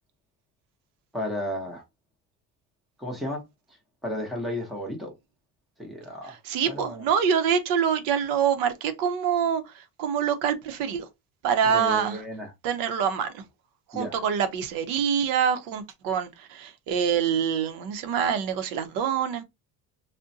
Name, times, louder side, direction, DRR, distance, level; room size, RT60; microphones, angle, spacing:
voice 1, 1.1-1.8 3.0-3.4 4.0-5.1 5.8-6.4 6.6-7.0 11.7-12.5 13.9-14.2, equal, ahead, 0.7 m, -33 dB
voice 2, 6.3-11.1 11.4-12.2 12.6-13.4 13.9-19.4, right 7 dB, 75° right, 0.7 m, -25 dB
3.7 x 2.1 x 2.6 m
cardioid pair, 175°, 34 cm